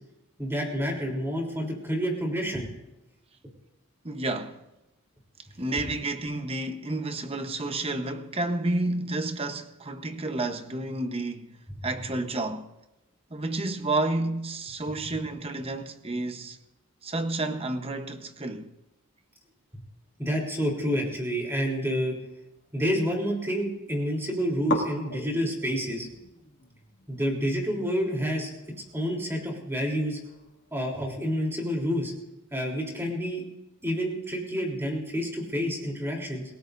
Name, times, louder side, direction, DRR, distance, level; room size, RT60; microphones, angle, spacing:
voice 1, 0.4-2.7 19.7-19.8 20.2-22.2 22.7-26.1 27.1-28.5 28.9-30.2 30.7-32.1 32.5-33.4 33.8-36.4, equal, 10° right, 3.5 m, -28 dB
voice 2, 4.0-4.6 5.6-11.6 11.8-12.7 13.3-16.6 17.0-18.7, right 2 dB, 25° right, 1.0 m, -30 dB
sound 1, 21.1-22.9 23.2-23.9 24.1-24.2 24.6-31.5, left 2 dB, 55° left, 2.2 m, -40 dB
28.5 x 17.5 x 2.6 m
head